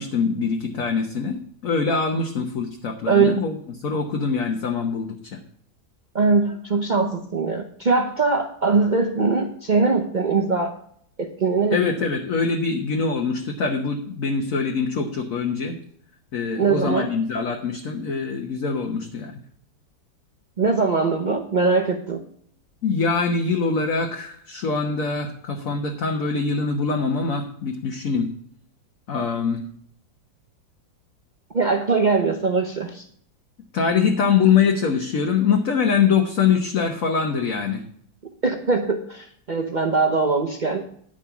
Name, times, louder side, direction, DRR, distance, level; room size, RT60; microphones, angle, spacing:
voice 1, 0.0-1.4 1.6-3.6 3.8-5.4 11.7-15.8 16.3-19.4 22.8-28.3 29.1-29.6 33.7-37.8, left 5 dB, 50° left, 2 dB, 1.2 m, -23 dB
voice 2, 3.1-3.4 6.1-10.7 11.2-11.8 16.5-17.1 20.6-22.2 31.5-33.0 38.4-40.8, right 4 dB, 85° right, 3 dB, 0.4 m, -21 dB
10.5 x 5.3 x 6.9 m, 0.63 s
omnidirectional pair, 2.1 m